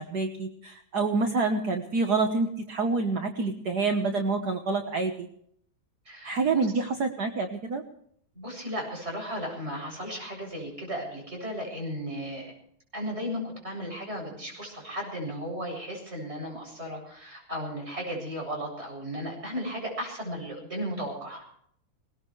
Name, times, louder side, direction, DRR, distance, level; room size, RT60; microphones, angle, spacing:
voice 1, 0.0-5.3 6.2-7.8, right 3 dB, 55° right, 4 dB, 1.8 m, -27 dB
voice 2, 6.0-6.6 8.3-12.5 12.9-21.4, equal, 30° right, 0 dB, 8.2 m, -35 dB
21.0 x 20.0 x 3.3 m, 0.64 s
omnidirectional pair, 2.1 m